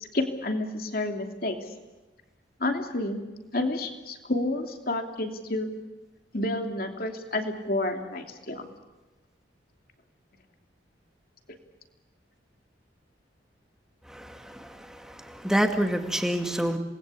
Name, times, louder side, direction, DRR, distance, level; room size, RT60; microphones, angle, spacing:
voice 1, 0.0-1.6 2.6-3.2 3.5-5.7 6.3-8.7, left 2 dB, 50° left, 5 dB, 2.9 m, -30 dB
voice 2, 14.1-16.8, equal, 5° right, 5 dB, 2.1 m, -28 dB
27.5 x 20.5 x 8.5 m, 1.2 s
head